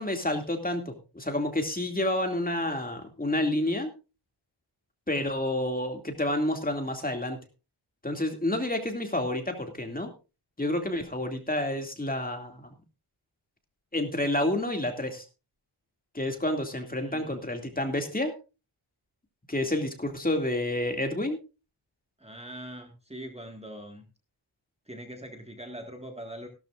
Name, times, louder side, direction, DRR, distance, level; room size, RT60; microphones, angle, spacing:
voice 1, 0.0-3.9 5.1-7.4 8.0-10.1 10.6-12.7 13.9-15.2 16.1-18.3 19.5-21.4, left 1 dB, 15° left, 4 dB, 2.4 m, -29 dB
voice 2, 16.9-17.4 22.2-24.0 24.9-26.5, right 1 dB, 10° right, 3 dB, 1.9 m, -42 dB
16.5 x 12.5 x 2.5 m, 0.30 s
wide cardioid pair, 110°, 50 cm